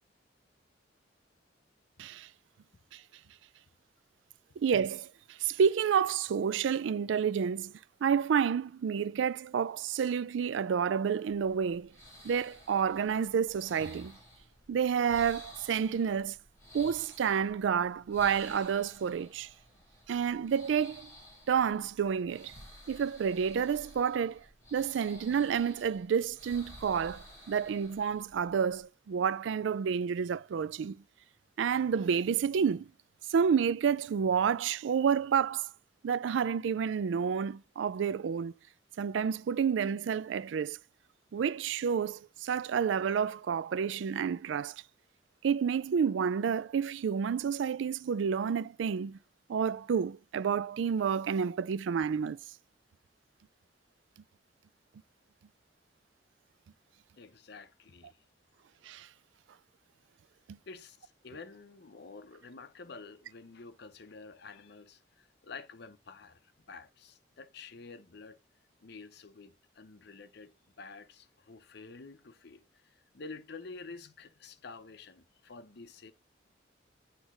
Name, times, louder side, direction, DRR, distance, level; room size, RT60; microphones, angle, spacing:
voice 1, 4.6-7.7 8.0-11.9 12.2-14.2 14.7-16.4 16.7-19.5 20.1-21.1 21.5-22.5 22.9-24.4 24.7-31.0 31.6-32.9 33.3-35.7 36.0-38.6 39.0-40.8 41.3-44.8 45.4-49.2 49.5-52.4 58.8-59.1 60.5-60.6, right 7 dB, 75° right, 0.3 m, -29 dB
sound 1, 11.3-28.8, equal, 15° left, 3.7 m, -53 dB
voice 2, 57.2-58.2 60.7-68.4 68.8-76.1, left 4 dB, 60° left, 0.7 m, -49 dB
8.0 x 3.3 x 6.2 m
head